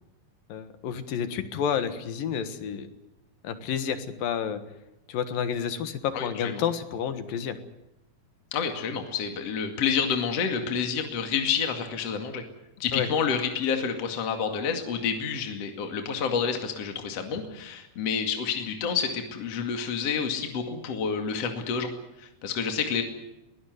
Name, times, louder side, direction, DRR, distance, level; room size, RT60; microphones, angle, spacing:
voice 1, 0.5-2.9 3.4-4.6 5.1-7.6 12.9-13.1, left 8 dB, 70° left, 10 dB, 3.2 m, -30 dB
voice 2, 6.1-6.6 8.5-12.4 12.8-21.9 22.2-23.0, left 6 dB, 45° left, 5 dB, 3.0 m, -29 dB
22.0 x 18.5 x 9.4 m, 0.93 s
omnidirectional pair, 4.4 m